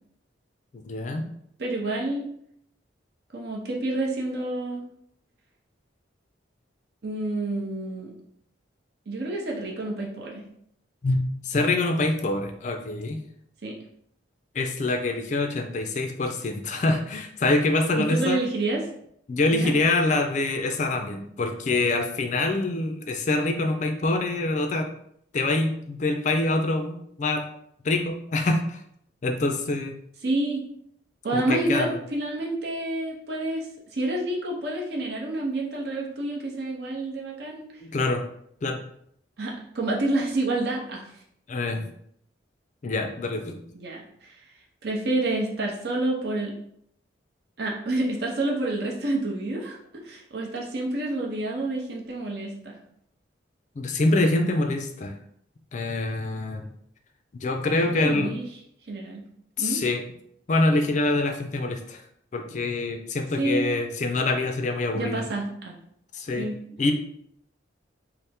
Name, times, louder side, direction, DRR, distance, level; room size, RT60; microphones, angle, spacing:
voice 1, 0.9-1.3 11.0-13.2 14.5-18.4 19.3-24.9 25.3-27.4 27.8-28.8 29.2-29.9 31.3-32.0 37.8-38.2 38.6-38.8 41.5-41.9 42.8-43.6 53.8-55.1 55.7-56.7 57.4-58.3 59.6-60.0 60.5-62.0 62.3-65.3 66.1-66.5 66.8-66.9, left 2 dB, 40° left, 5 dB, 0.4 m, -25 dB
voice 2, 1.6-2.3 3.3-4.8 7.0-8.1 9.1-10.4 13.6-13.7 18.0-18.9 19.5-19.7 30.2-30.6 31.2-33.7 33.9-37.6 39.4-41.0 43.7-44.3 44.8-46.5 47.6-52.8 58.0-58.4 58.9-59.2 59.6-59.8 63.4-63.6 64.9-65.7 66.4-66.6, right 2 dB, 55° right, -2 dB, 0.7 m, -28 dB
3.3 x 2.0 x 4.2 m, 0.70 s
head